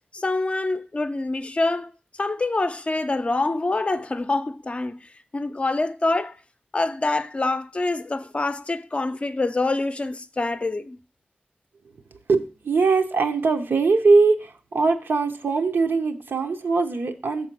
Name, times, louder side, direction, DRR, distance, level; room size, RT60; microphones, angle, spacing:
voice 1, 0.1-1.9 2.2-5.0 5.3-6.4 6.7-11.0, left 2 dB, 35° left, 0.5 m, -25 dB
voice 2, 12.3-17.5, right 4 dB, 75° right, 0.8 m, -21 dB
6.8 x 4.2 x 6.0 m
wide cardioid pair, 80°, 4 cm